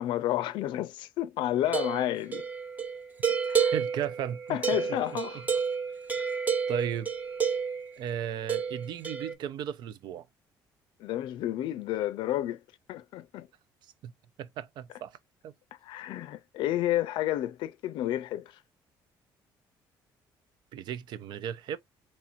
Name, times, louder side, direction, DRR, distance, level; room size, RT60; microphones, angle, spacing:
voice 1, 0.0-2.4 3.5-3.7 4.5-5.6 11.0-12.6 12.9-13.5 15.8-18.6, left 13 dB, 75° left, 0.5 m, -31 dB
sound 1, 1.6-7.9 8.5-9.3, right 6 dB, 20° right, 0.8 m, -30 dB
voice 2, 3.7-4.6 6.7-7.1 8.0-10.3 14.0-14.1 14.4-15.2 15.4-15.5 20.7-21.8, right 9 dB, 65° right, 0.5 m, -35 dB
4.3 x 3.0 x 2.5 m
cardioid pair, 120°, 8 cm